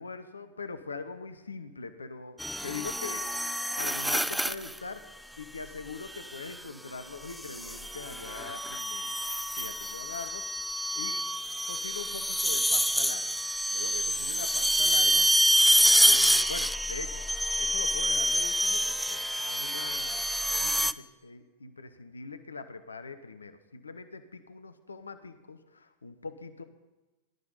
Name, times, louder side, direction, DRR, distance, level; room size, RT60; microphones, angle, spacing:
voice 1, 0.0-3.3 3.8-5.0 5.4-9.3 9.6-10.4 10.9-11.2 11.7-13.4 13.7-15.3 15.8-17.3 17.5-26.6, left 4 dB, 75° left, 11 dB, 0.8 m, -42 dB
sound 1, 2.4-4.8 6.1-6.5 7.4-20.9, equal, ahead, 0.4 m, -27 dB
20.0 x 11.5 x 3.9 m, 1.1 s
figure-of-eight pair, 90°, 0 cm